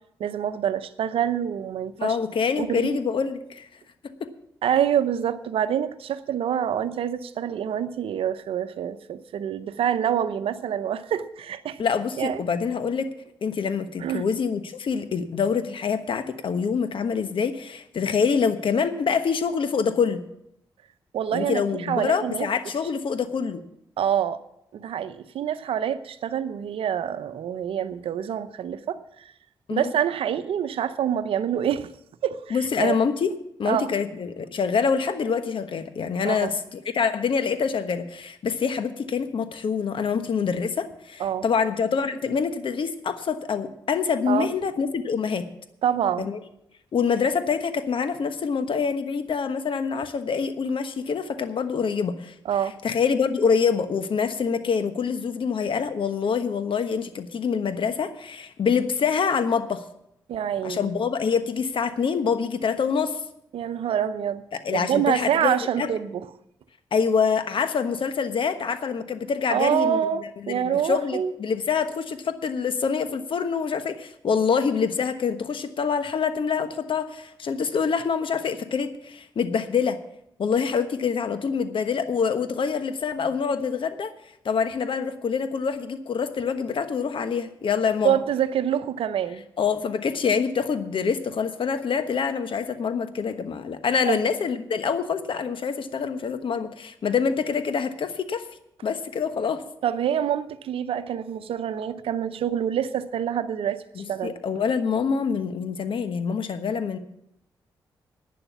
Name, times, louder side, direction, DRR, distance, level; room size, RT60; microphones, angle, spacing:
voice 1, 0.2-2.2 2.6-3.0 4.6-11.8 12.2-12.4 14.0-14.3 21.1-22.5 24.0-24.4 24.7-29.3 29.7-31.9 32.2-33.0 33.7-33.9 36.2-36.5 41.2-41.4 44.3-44.5 45.8-46.3 52.4-52.8 60.3-60.9 63.5-64.4 64.7-66.3 69.5-71.3 88.0-89.4 94.1-94.2 99.8-103.8 104.1-104.4, right 9 dB, 70° right, 0.8 m, -26 dB
voice 2, 2.0-3.7 4.0-4.3 11.8-13.1 13.4-20.2 21.3-23.6 29.7-29.9 32.5-33.3 33.6-45.4 46.2-46.4 46.9-52.3 52.8-59.8 60.6-63.2 64.6-65.9 66.9-80.0 80.4-84.1 84.4-88.2 89.6-98.4 98.8-99.6 103.9-107.0, left 6 dB, 60° left, 1.2 m, -26 dB
11.0 x 9.3 x 6.9 m
hypercardioid pair, 40°, 10 cm